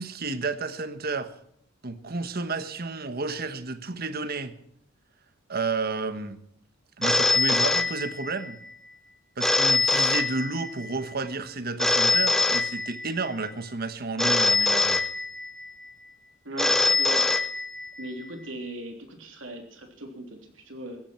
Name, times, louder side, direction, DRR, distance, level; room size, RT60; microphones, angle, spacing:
voice 1, 0.0-1.3 1.8-4.6 5.5-6.4 7.0-8.6 9.4-15.0, right 3 dB, 50° right, 1.3 m, -31 dB
Telephone, 7.0-8.5 9.4-10.9 11.8-13.3 14.2-15.7 16.6-18.1, left 3 dB, ahead, 0.7 m, -23 dB
voice 2, 16.4-17.3 18.0-21.0, right 1 dB, 70° right, 3.5 m, -39 dB
16.5 x 14.5 x 4.6 m
head